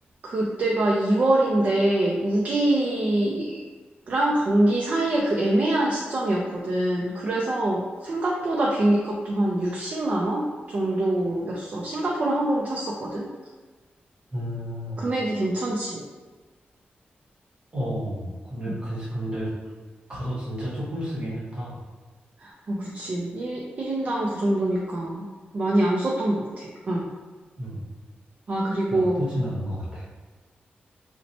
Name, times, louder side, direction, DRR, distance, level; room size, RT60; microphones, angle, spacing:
voice 1, 0.2-3.6 4.1-13.3 15.0-16.0 18.7-18.8 22.4-25.3 25.5-27.1 28.5-29.2, right 1 dB, 40° right, -3 dB, 0.4 m, -24 dB
voice 2, 14.3-15.0 17.7-19.5 20.1-21.8 27.6-27.8 28.9-30.1, equal, 25° right, -6 dB, 1.0 m, -31 dB
2.8 x 2.1 x 4.0 m, 1.3 s
wide cardioid pair, 180°, 4 cm